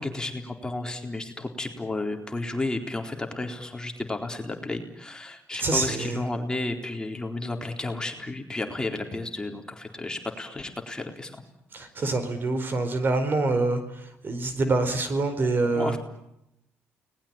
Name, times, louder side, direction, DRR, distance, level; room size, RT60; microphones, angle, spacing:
voice 1, 0.0-11.4 15.7-16.0, left 2 dB, 15° left, 4 dB, 4.0 m, -32 dB
voice 2, 5.6-6.2 11.7-13.8 14.2-16.0, right 3 dB, 45° right, 10 dB, 4.5 m, -25 dB
30.0 x 20.0 x 8.9 m, 0.81 s
cardioid pair, 85°, 5 cm